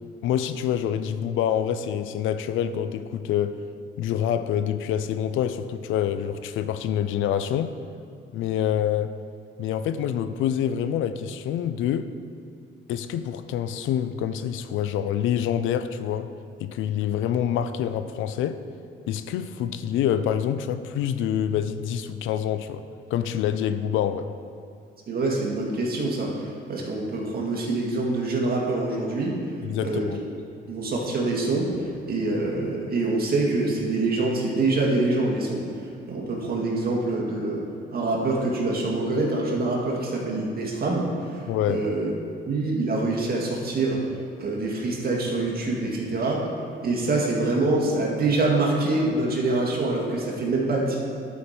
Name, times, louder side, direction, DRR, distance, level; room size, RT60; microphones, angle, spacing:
voice 1, 0.2-3.6 4.0-7.7 8.3-9.1 9.6-12.1 12.9-16.3 16.6-18.6 19.1-22.8 23.1-24.3 29.6-30.2 41.5-41.8, left 9 dB, 85° left, 11 dB, 0.5 m, -26 dB
voice 2, 25.1-29.3 29.8-30.1 30.7-37.6 37.9-41.4 41.7-42.1 42.5-44.0 44.4-46.4 46.8-51.0, right 2 dB, 50° right, -2 dB, 2.0 m, -25 dB
11.5 x 5.2 x 4.3 m, 2.4 s
cardioid pair, 90°, 20 cm